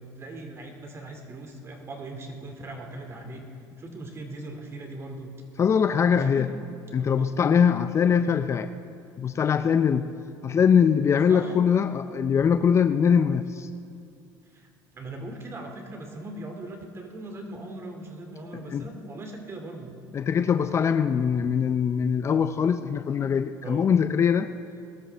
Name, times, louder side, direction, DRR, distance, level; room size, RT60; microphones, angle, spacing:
voice 1, 0.2-3.4 3.8-5.3 6.1-6.5 7.0-7.3 11.3-11.6 14.5-14.7 14.9-19.9 23.6-23.9, right 2 dB, 35° right, 3 dB, 2.4 m, -39 dB
voice 2, 5.6-6.5 6.9-8.7 9.2-10.1 10.4-13.7 18.7-18.8 20.1-24.5, left 7 dB, 35° left, 10 dB, 0.5 m, -22 dB
21.5 x 13.0 x 3.4 m, 2.4 s
supercardioid pair, 95°, 8 cm